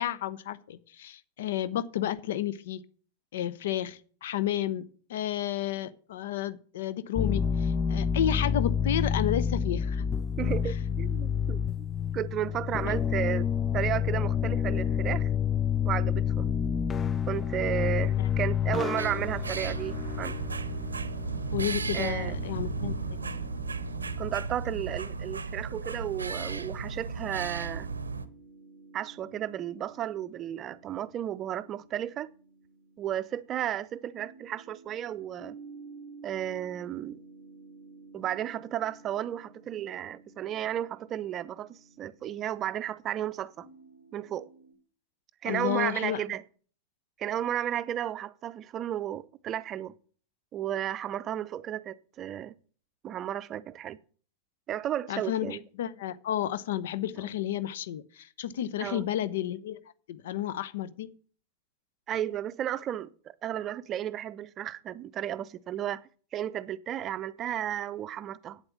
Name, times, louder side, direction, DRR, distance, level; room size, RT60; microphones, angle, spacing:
voice 1, 0.0-2.8 3.3-4.8 5.1-10.0 18.2-18.3 21.5-22.9 45.4-46.2 55.1-59.8 60.1-61.1, left 11 dB, 60° left, 0.7 m, -31 dB
sound 1, 7.2-24.6, left 7 dB, 25° left, 0.4 m, -29 dB
voice 2, 10.4-11.9 12.1-15.3 15.8-16.5 17.3-20.3 21.9-22.3 24.2-27.9 28.9-32.3 33.0-35.5 36.2-37.2 38.1-43.7 44.1-44.5 45.4-46.4 47.2-49.9 50.5-52.5 53.0-54.0 54.7-55.6 58.8-59.1 62.1-66.0 66.3-68.6, right 11 dB, 30° right, 0.6 m, -33 dB
sound 2, 19.0-28.2, right 4 dB, 75° right, 0.7 m, -34 dB
sound 3, 27.3-44.7, right 4 dB, 85° left, 6.6 m, -53 dB
8.8 x 7.8 x 7.1 m
figure-of-eight pair, 90°, 0 cm